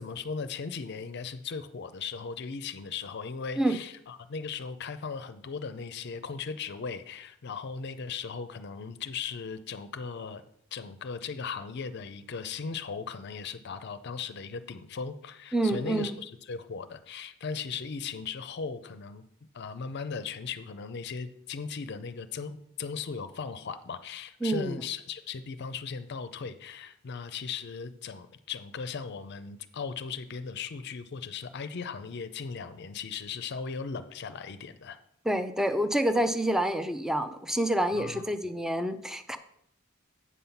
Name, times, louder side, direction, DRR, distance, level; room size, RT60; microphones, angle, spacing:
voice 1, 0.0-10.4 10.7-19.2 19.5-35.0 37.9-38.2, left 5 dB, 55° left, 11 dB, 0.5 m, -37 dB
voice 2, 15.5-16.2 24.4-24.8 35.3-39.4, right 1 dB, ahead, 10 dB, 0.4 m, -27 dB
8.3 x 5.6 x 5.7 m, 0.73 s
head